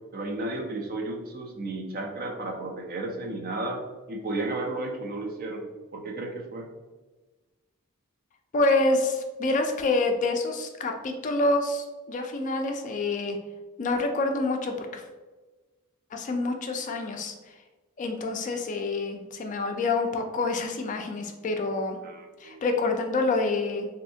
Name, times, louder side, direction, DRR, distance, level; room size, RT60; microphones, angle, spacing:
voice 1, 0.1-6.7 22.0-22.6, right 2 dB, 40° right, 2 dB, 0.5 m, -33 dB
voice 2, 8.5-13.4 13.8-15.0 16.1-17.3 18.0-22.0 22.4-23.9, left 2 dB, 35° left, 4 dB, 0.3 m, -27 dB
3.2 x 2.7 x 2.7 m, 1.2 s
head